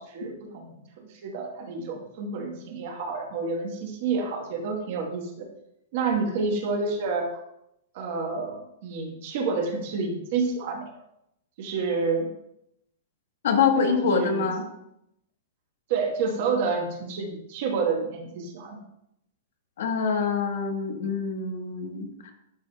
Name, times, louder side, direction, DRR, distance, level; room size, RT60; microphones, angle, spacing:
voice 1, 0.0-5.5 5.9-7.4 7.9-10.9 11.6-12.3 13.8-13.9 14.1-14.5 15.9-18.8, right 4 dB, 45° right, 3 dB, 1.2 m, -29 dB
voice 2, 13.4-14.6 19.8-22.3, left 5 dB, 65° left, 4 dB, 1.2 m, -25 dB
11.0 x 4.8 x 2.3 m, 0.79 s
supercardioid pair, 170°, 0 cm